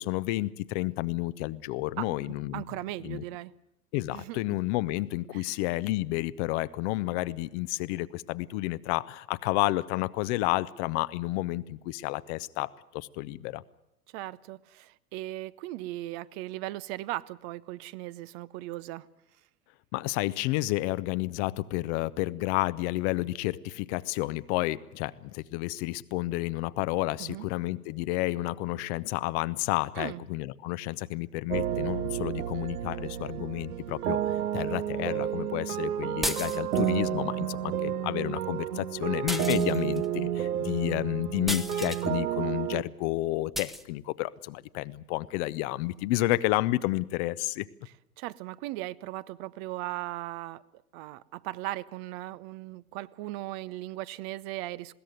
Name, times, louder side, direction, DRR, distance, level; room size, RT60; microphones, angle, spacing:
voice 1, 0.0-2.6 3.0-3.2 3.9-13.6 19.9-34.2 34.5-47.7, left 18 dB, 50° left, 16 dB, 0.8 m, -31 dB
voice 2, 2.5-3.5 4.1-4.4 5.3-5.5 14.1-19.1 27.2-27.5 30.0-30.2 48.2-50.6 50.9-54.9, right 17 dB, 45° right, 17 dB, 0.7 m, -38 dB
sound 1, 31.5-42.8, right 10 dB, 80° right, 0.8 m, -31 dB
sound 2, 36.2-37.0 39.3-40.1 41.5-42.1 43.5-43.8, equal, ahead, 0.9 m, -34 dB
21.0 x 16.5 x 9.3 m, 0.82 s
figure-of-eight pair, 85°, 45 cm